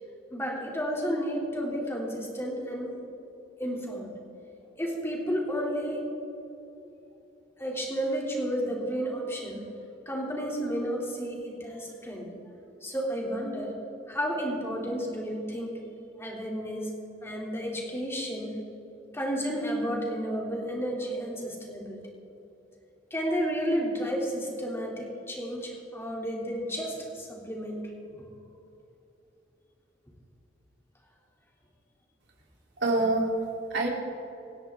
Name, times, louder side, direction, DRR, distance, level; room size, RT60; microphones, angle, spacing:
voice 1, 0.3-2.9 3.6-4.1 4.8-6.1 7.6-9.6 10.1-12.3 12.8-13.7 14.1-15.7 16.2-16.9 17.2-18.6 19.1-22.0 23.1-27.8, equal, 15° left, -2 dB, 2.8 m, -32 dB
voice 2, 32.8-33.9, right 2 dB, 85° right, -1 dB, 3.1 m, -26 dB
26.0 x 10.5 x 3.6 m, 2.9 s
head